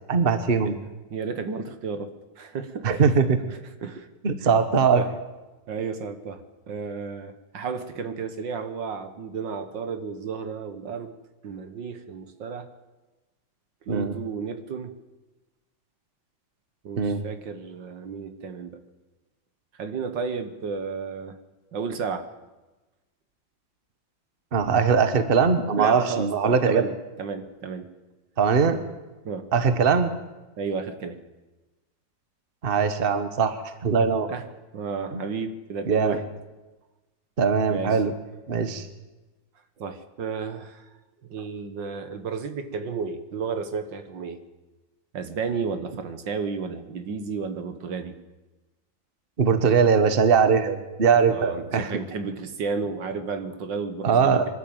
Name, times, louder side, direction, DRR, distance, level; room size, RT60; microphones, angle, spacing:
voice 1, 0.1-0.7 2.8-3.4 4.2-5.0 13.9-14.1 17.0-17.2 24.5-26.9 28.4-28.8 29.5-30.1 32.6-34.3 35.1-35.2 35.9-36.2 37.4-38.1 38.5-38.9 49.4-51.9 54.0-54.5, right 5 dB, 30° right, 10 dB, 1.4 m, -21 dB
voice 2, 1.1-3.0 3.5-4.1 4.4-4.5 4.9-5.1 5.7-11.1 11.4-12.7 13.8-14.9 16.8-18.8 19.8-21.4 21.7-22.3 25.8-27.9 29.3-29.5 30.6-31.2 34.3-34.4 34.7-36.2 37.7-38.0 39.8-40.9 41.3-44.4 45.1-48.1 51.3-54.4, right 5 dB, 70° right, 10 dB, 2.0 m, -32 dB
24.5 x 12.5 x 9.0 m, 1.1 s
omnidirectional pair, 2.1 m